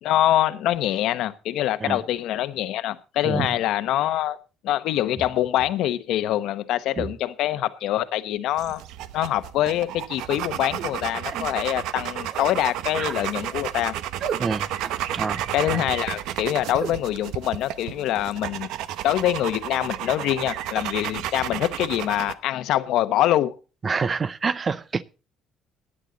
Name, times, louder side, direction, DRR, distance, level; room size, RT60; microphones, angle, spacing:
voice 1, 0.0-4.4 4.6-8.8 9.1-13.9 15.5-18.7 19.0-23.6, left 13 dB, 75° left, 1.0 m, -24 dB
sound 1, 8.6-22.3, right 12 dB, 85° right, 0.8 m, -32 dB
sound 2, 10.8-10.9 11.3-11.5 12.3-12.6 12.9-13.2 14.2-14.4 14.8-15.0 16.7-16.9, right 7 dB, 50° right, 0.9 m, -33 dB
voice 2, 23.8-25.0, right 5 dB, 30° right, 0.6 m, -26 dB
16.0 x 10.0 x 3.9 m
cardioid pair, 130°, 0 cm